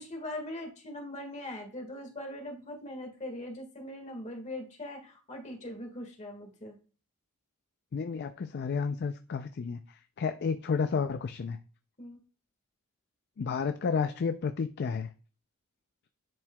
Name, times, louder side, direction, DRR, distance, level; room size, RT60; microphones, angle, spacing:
voice 1, 0.0-6.8 12.0-12.2, left 1 dB, 35° left, 1.7 m, -41 dB
voice 2, 7.9-11.6 13.4-15.1, left 5 dB, 50° left, 0.4 m, -31 dB
10.5 x 4.6 x 2.2 m
head